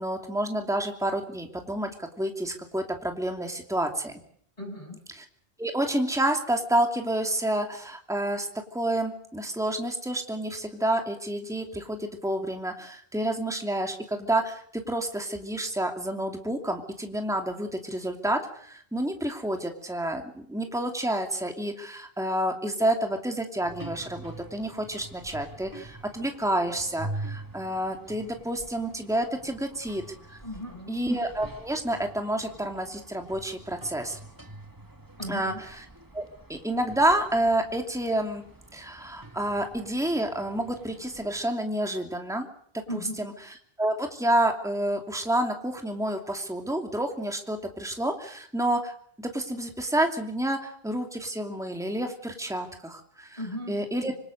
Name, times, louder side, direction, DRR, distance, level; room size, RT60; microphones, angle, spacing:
voice 1, 0.0-4.1 5.6-30.0 30.3-30.4 30.9-34.2 35.3-35.5 36.1-36.2 36.5-38.4 38.7-42.5 42.9-53.4 53.7-54.2, right 1 dB, 5° right, 3 dB, 2.7 m, -29 dB
voice 2, 4.6-5.0 30.4-31.0 35.2-35.6 42.9-43.3 53.4-53.8, left 1 dB, 35° left, 2 dB, 8.1 m, -36 dB
sound 1, 23.6-41.5, right 2 dB, 20° right, 1.8 m, -45 dB
26.0 x 26.0 x 6.7 m, 0.63 s
omnidirectional pair, 1.1 m